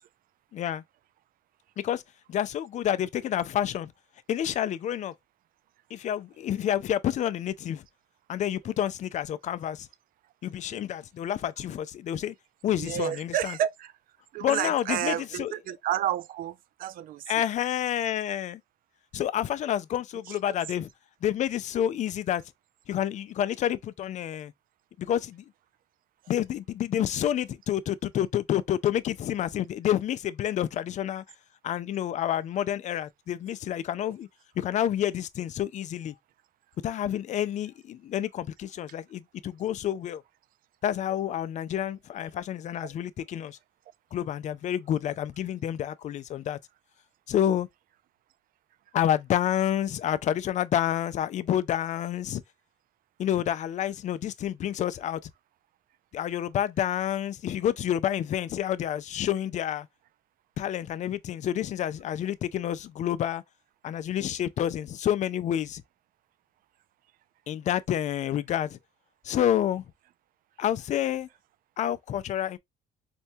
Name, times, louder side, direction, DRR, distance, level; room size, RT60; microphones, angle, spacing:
voice 1, 0.5-0.8 1.8-2.0 2.3-3.9 4.3-5.1 5.9-7.8 8.3-9.9 10.4-12.3 12.6-13.6 14.4-15.5 17.3-18.6 19.1-20.9 21.2-22.4 22.9-24.5 25.0-25.4 26.3-31.2 31.6-34.3 34.6-36.1 36.8-40.2 40.8-43.6 44.1-46.6 47.3-47.7 48.9-52.4 53.2-55.3 56.1-59.9 60.6-63.4 63.8-65.8 67.5-68.8 69.2-69.8 70.6-71.3 71.8-72.6, left 10 dB, 45° left, 0.4 m, -29 dB
voice 2, 12.8-13.9 14.3-17.5 20.3-20.4 34.0-34.1 42.8-42.9, right 11 dB, 55° right, 0.4 m, -31 dB
4.3 x 2.2 x 2.7 m
cardioid pair, 110°, 17 cm